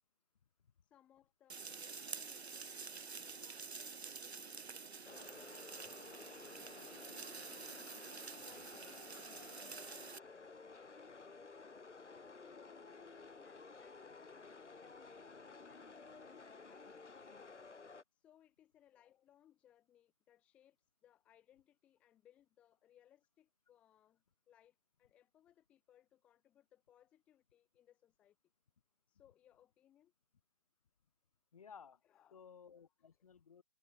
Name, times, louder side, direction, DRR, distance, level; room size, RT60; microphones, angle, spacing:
voice 1, 0.8-7.9 8.4-11.1 11.8-15.9 16.2-17.6 18.1-28.4 29.1-30.1 32.0-32.5 33.0-33.3, left 11 dB, 5° left, 1.7 m, -69 dB
sound 1, 1.5-10.2, right 5 dB, 60° right, 2.0 m, -49 dB
sound 2, 5.0-18.0, left 4 dB, 75° left, 5.2 m, -54 dB
voice 2, 31.5-32.0 32.3-33.6, left 7 dB, 30° left, 4.0 m, -57 dB
open air
hypercardioid pair, 175°, 36 cm